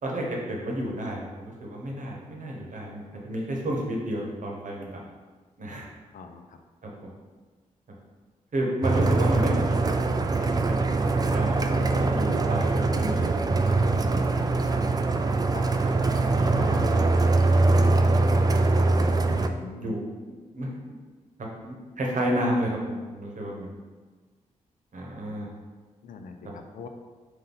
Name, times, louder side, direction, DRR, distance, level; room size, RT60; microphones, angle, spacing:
voice 1, 0.0-5.0 5.6-5.9 6.8-6.9 8.5-10.0 10.4-11.5 11.9-13.2 14.0-14.1 15.1-17.0 19.7-20.0 20.5-20.7 21.6-23.7 24.9-25.5, right 1 dB, 60° right, -1 dB, 1.0 m, -31 dB
sound 1, 8.8-19.5, right 3 dB, 25° right, 0.3 m, -23 dB
voice 2, 13.9-14.4 15.5-15.6 19.3-20.0 26.0-26.9, left 4 dB, 65° left, 6 dB, 0.4 m, -42 dB
3.8 x 2.6 x 3.9 m, 1.4 s
supercardioid pair, 45°, 15 cm